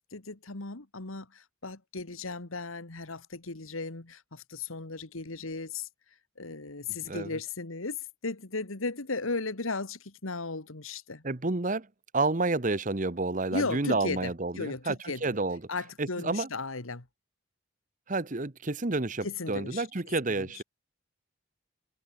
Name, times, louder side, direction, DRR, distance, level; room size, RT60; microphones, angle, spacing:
voice 1, 0.1-5.9 6.4-8.0 8.2-11.2 13.5-15.4 15.7-17.0 19.2-19.9 20.4-20.6, left 3 dB, 90° left, 2.0 m, -36 dB
voice 2, 11.2-11.9 12.1-15.6 16.0-16.5 18.1-20.6, right 3 dB, 40° right, 1.1 m, -30 dB
head